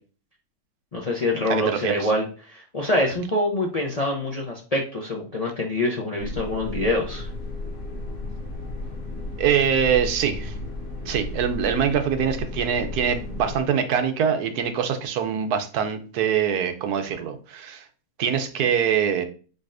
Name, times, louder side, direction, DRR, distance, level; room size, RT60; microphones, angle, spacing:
voice 1, 0.9-7.3, left 1 dB, 40° left, -1 dB, 0.5 m, -25 dB
voice 2, 1.5-2.1 9.4-10.5 11.1-17.8 18.2-19.2, right 8 dB, 80° right, 8 dB, 1.2 m, -24 dB
sound 1, 6.2-13.6, left 2 dB, 60° left, 1.8 m, -34 dB
5.0 x 4.0 x 2.5 m, 0.38 s
omnidirectional pair, 1.6 m